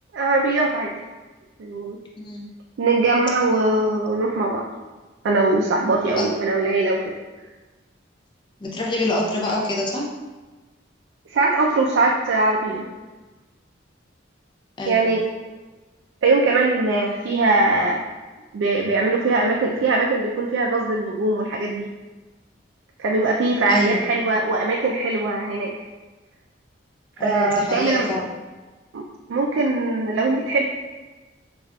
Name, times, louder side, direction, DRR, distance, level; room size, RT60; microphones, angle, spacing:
voice 1, 0.1-0.9 1.6-2.0 2.8-4.7 5.2-7.1 11.3-12.8 14.9-15.2 16.2-18.0 18.5-21.9 23.0-25.7 27.2-28.2 28.9-30.7, right 2 dB, 75° right, -1 dB, 0.3 m, -21 dB
voice 2, 2.2-2.5 6.2-6.3 8.6-10.1 14.8-15.1 23.7-24.0 27.2-28.2, left 1 dB, 25° left, -2 dB, 0.5 m, -26 dB
4.8 x 2.4 x 2.2 m, 1.2 s
head